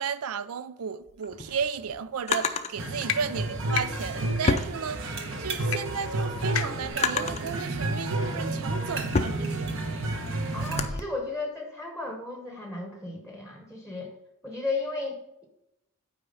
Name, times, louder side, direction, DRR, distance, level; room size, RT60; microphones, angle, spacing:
voice 1, 0.0-9.8, right 6 dB, 80° right, 0.4 m, -34 dB
Drawer open or close, 1.1-2.7 3.8-5.4 5.8-7.5 8.2-11.0, left 4 dB, 30° left, 0.5 m, -31 dB
sound 1, 2.3-2.5 3.0-3.2 3.7-3.9 4.4-4.5 5.7-5.8 6.0-6.1 6.5-6.9, left 9 dB, 65° left, 0.7 m, -30 dB
sound 2, 2.8-10.9, right 2 dB, 60° right, 1.0 m, -31 dB
voice 2, 10.5-14.1 14.4-15.5, left 3 dB, 5° right, 0.9 m, -34 dB
8.6 x 4.7 x 5.4 m
head